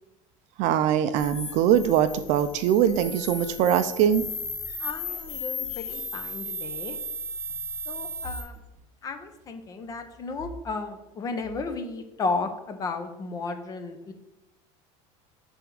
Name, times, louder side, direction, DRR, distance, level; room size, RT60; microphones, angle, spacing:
voice 1, 0.6-4.2, right 9 dB, 50° right, 11 dB, 0.4 m, -22 dB
sound 1, 1.2-8.4, left 2 dB, 60° left, 1.7 m, -35 dB
voice 2, 4.8-7.0 7.9-8.6 9.0-14.1, left 3 dB, 20° left, 7 dB, 0.6 m, -33 dB
7.1 x 3.5 x 6.2 m, 0.92 s
cardioid pair, 175°, 16 cm